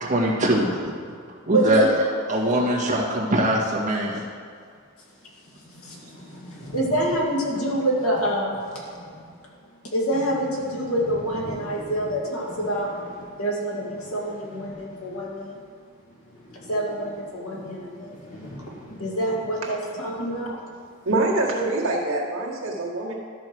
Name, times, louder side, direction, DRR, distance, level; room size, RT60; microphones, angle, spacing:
voice 1, 0.0-0.9 1.5-1.8 2.3-4.2, right 1 dB, 35° right, -3 dB, 1.6 m, -22 dB
sound 1, 4.8-4.9 5.2-5.3 5.5-15.7 16.0-20.4 20.7-20.8 21.4-21.9, equal, 60° left, 2.3 m, -43 dB
voice 2, 6.7-8.5 9.9-12.9 13.4-15.6 16.7-18.2 19.0-20.6, right 1 dB, 85° left, -4 dB, 2.3 m, -26 dB
voice 3, 21.1-23.1, right 2 dB, 65° right, -4 dB, 1.8 m, -25 dB
12.5 x 4.8 x 6.1 m, 2.1 s
head